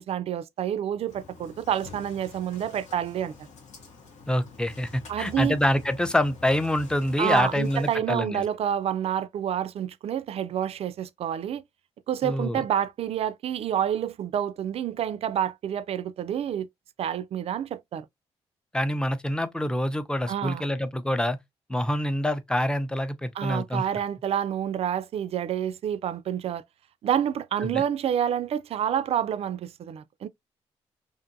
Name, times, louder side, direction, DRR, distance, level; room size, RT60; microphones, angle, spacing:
voice 1, 0.0-3.3 5.1-5.6 7.2-11.6 12.1-16.7 17.0-18.1 20.3-20.6 23.4-26.6 27.0-30.3, right 9 dB, 60° right, 0.3 m, -28 dB
Engine starting, 1.1-8.0, left 5 dB, 85° left, 0.9 m, -47 dB
voice 2, 4.3-8.4 12.2-12.6 18.7-21.4 21.7-23.8 27.6-27.8, left 1 dB, 5° left, 0.5 m, -26 dB
2.6 x 2.5 x 2.6 m
cardioid pair, 65°, 12 cm